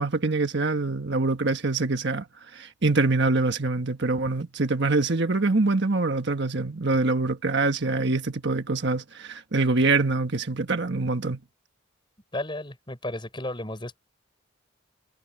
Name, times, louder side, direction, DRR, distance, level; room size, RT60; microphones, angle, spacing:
voice 1, 0.0-2.2 2.5-11.4, right 3 dB, 60° right, 1.4 m, -24 dB
voice 2, 12.3-14.0, left 1 dB, 25° left, 5.3 m, -33 dB
head